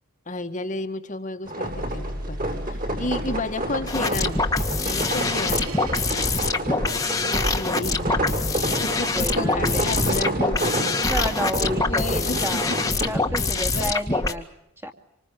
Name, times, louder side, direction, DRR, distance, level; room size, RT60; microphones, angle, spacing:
voice 1, 0.3-4.5 4.9-5.9 7.3-8.1 8.4-8.5 8.8-10.9 11.8-13.9, left 2 dB, 35° left, 7 dB, 1.8 m, -32 dB
sound 1, 1.4-13.1, right 1 dB, 40° right, 7.3 m, -29 dB
sound 2, 1.7-7.0, right 1 dB, 80° right, 3.3 m, -36 dB
sound 3, 3.9-14.3, left 3 dB, 15° left, 1.8 m, -24 dB
voice 2, 9.1-9.8 11.0-12.7 13.0-14.5 14.8-14.9, equal, 10° right, 5 dB, 2.6 m, -31 dB
27.0 x 25.0 x 7.6 m, 0.79 s
head